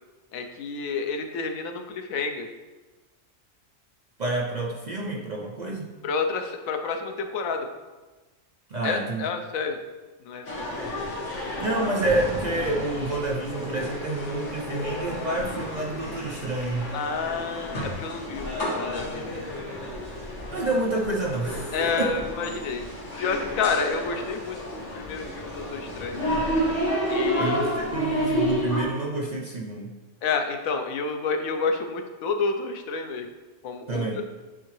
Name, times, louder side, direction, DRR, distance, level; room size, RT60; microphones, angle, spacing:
voice 1, 0.3-2.5 6.0-7.7 8.8-9.8 10.2-10.7 16.9-19.3 21.7-22.8 23.2-26.2 27.1-27.6 30.2-33.3 33.6-34.2, left 4 dB, 85° left, 5 dB, 1.1 m, -29 dB
voice 2, 4.2-5.9 8.7-9.3 11.4-16.9 20.5-22.1 27.2-29.9 33.9-34.2, right 2 dB, 50° right, -2 dB, 0.5 m, -28 dB
sound 1, 10.4-28.8, equal, 60° left, 1.8 m, -31 dB
10.0 x 3.6 x 3.1 m, 1.2 s
omnidirectional pair, 1.4 m